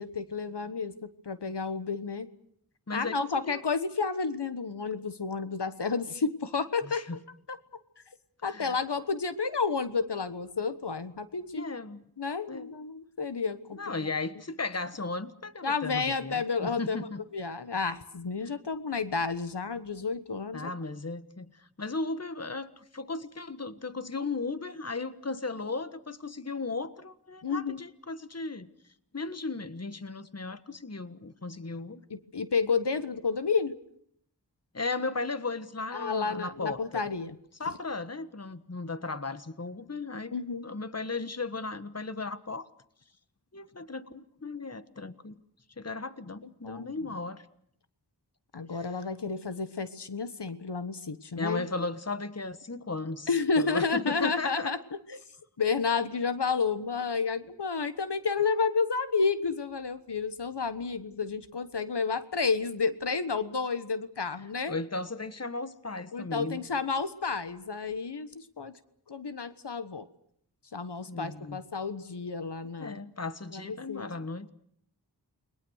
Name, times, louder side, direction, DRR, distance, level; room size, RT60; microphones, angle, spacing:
voice 1, 0.0-2.3 2.9-7.2 7.5-7.6 8.4-11.7 12.2-13.9 15.6-17.1 17.3-20.7 27.4-27.8 32.1-33.7 35.9-37.3 40.3-40.7 46.6-46.9 48.5-51.7 53.3-54.8 55.1-55.2 55.6-64.7 66.1-68.7 69.1-70.1 70.7-73.0 73.5-74.0, left 4 dB, 85° left, 12 dB, 1.4 m, -31 dB
voice 2, 2.9-3.6 6.8-7.2 8.5-8.8 11.5-12.0 12.5-12.7 13.8-17.2 18.4-18.6 20.5-28.7 29.1-32.0 34.7-37.0 37.6-40.3 40.6-42.7 43.5-45.4 45.8-47.4 48.7-49.0 51.3-53.3 53.6-54.7 64.7-66.7 71.1-71.6 72.8-74.5, left 3 dB, 40° left, 12 dB, 1.4 m, -36 dB
29.5 x 21.5 x 6.5 m, 0.67 s
wide cardioid pair, 50°, 40 cm